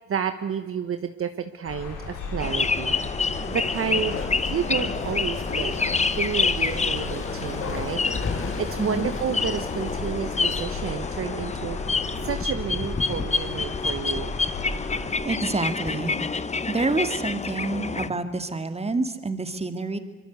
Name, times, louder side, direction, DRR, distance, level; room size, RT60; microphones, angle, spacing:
voice 1, 0.1-4.2 4.5-5.7 6.2-11.8 12.2-14.3, right 7 dB, 45° right, 9 dB, 1.2 m, -31 dB
sound 1, 1.6-15.2, left 3 dB, 85° left, 5.3 m, -36 dB
sound 2, 2.4-18.1, left 4 dB, 20° left, 1.0 m, -28 dB
Bark, 3.3-10.9 11.2-11.3, left 4 dB, 45° left, 3.3 m, -37 dB
voice 2, 8.8-9.1 15.2-16.2 16.7-20.0, right 3 dB, 20° right, 9 dB, 2.2 m, -27 dB
24.5 x 22.5 x 8.2 m, 1.3 s
cardioid pair, 90°, 30 cm